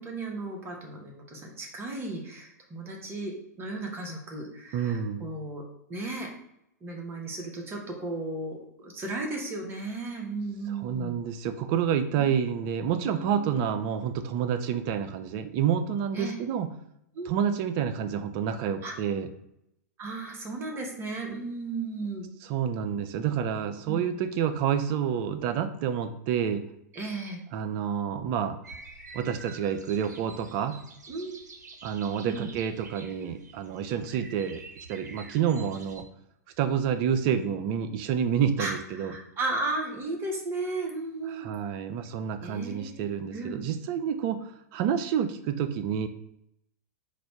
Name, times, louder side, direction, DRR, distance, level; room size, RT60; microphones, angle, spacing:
voice 1, 0.0-5.6 5.9-6.3 6.8-11.2 13.0-13.7 16.1-16.3 17.1-17.3 18.8-18.9 20.0-22.3 23.9-24.0 26.9-27.4 31.1-31.3 32.3-32.5 38.6-41.5 42.4-43.6, right 2 dB, 25° right, 1 dB, 1.2 m, -35 dB
voice 2, 4.7-5.3 10.7-16.7 17.3-19.3 22.5-26.6 27.5-28.6 29.1-30.8 31.8-34.6 34.9-36.1 36.6-39.1 41.4-46.1, right 8 dB, 45° right, 10 dB, 0.5 m, -28 dB
sound 1, 28.6-36.0, right 4 dB, 90° right, 0.6 m, -48 dB
4.1 x 2.6 x 4.5 m, 0.78 s
hypercardioid pair, 110°, 9 cm